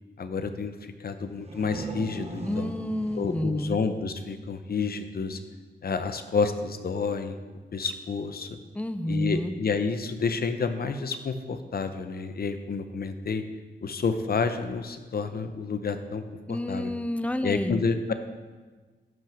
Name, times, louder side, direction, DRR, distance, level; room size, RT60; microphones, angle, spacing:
voice 1, 0.2-2.7 3.1-5.4 5.8-7.4 7.7-8.6 9.1-13.4 13.8-16.2 16.5-16.9 17.4-18.1, left 4 dB, 55° left, 9 dB, 0.7 m, -29 dB
sound 1, 1.2-4.8, right 3 dB, 35° right, 0.8 m, -41 dB
voice 2, 2.5-3.8 8.7-9.5 16.5-17.8, left 1 dB, 5° left, 12 dB, 0.3 m, -29 dB
10.5 x 6.0 x 6.0 m, 1.4 s
wide cardioid pair, 175°, 19 cm